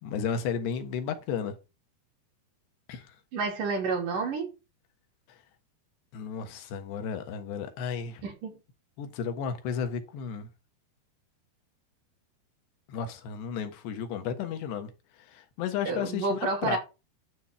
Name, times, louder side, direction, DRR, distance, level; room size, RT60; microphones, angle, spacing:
voice 1, 0.0-1.5 2.9-3.1 6.1-8.2 9.0-10.5 12.9-14.9 15.3-16.8, left 7 dB, 85° left, 3.5 m, -33 dB
voice 2, 3.3-4.5 8.2-8.6 15.9-16.8, right 4 dB, 55° right, 4.2 m, -30 dB
11.5 x 4.3 x 7.3 m
omnidirectional pair, 4.7 m